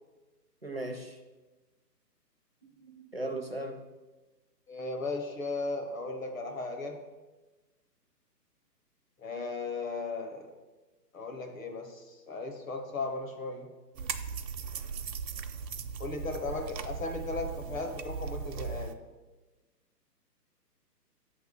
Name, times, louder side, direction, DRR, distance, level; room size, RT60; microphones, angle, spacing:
voice 1, 0.6-1.2 2.6-3.8, right 1 dB, 40° right, 3 dB, 0.4 m, -38 dB
voice 2, 4.7-7.0 9.2-10.5 11.1-13.7 16.0-18.9, left 3 dB, 55° left, 4 dB, 1.2 m, -36 dB
sound 1, 13.9-18.9, right 6 dB, 85° right, 0.7 m, -38 dB
7.9 x 3.6 x 5.3 m, 1.2 s
hypercardioid pair, 175°, 49 cm